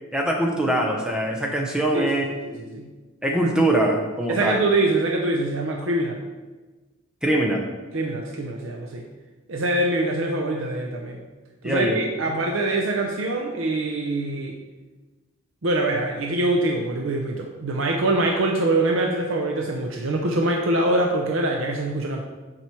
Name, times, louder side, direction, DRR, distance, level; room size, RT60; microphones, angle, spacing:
voice 1, 0.1-2.2 3.2-4.6 7.2-7.6 11.6-12.0, right 1 dB, 5° right, 0 dB, 0.7 m, -22 dB
voice 2, 1.9-2.9 4.3-6.3 7.9-9.0 9.5-11.2 11.6-14.6 15.6-22.2, right 2 dB, 70° right, 1 dB, 0.7 m, -24 dB
7.3 x 4.8 x 4.6 m, 1.2 s
head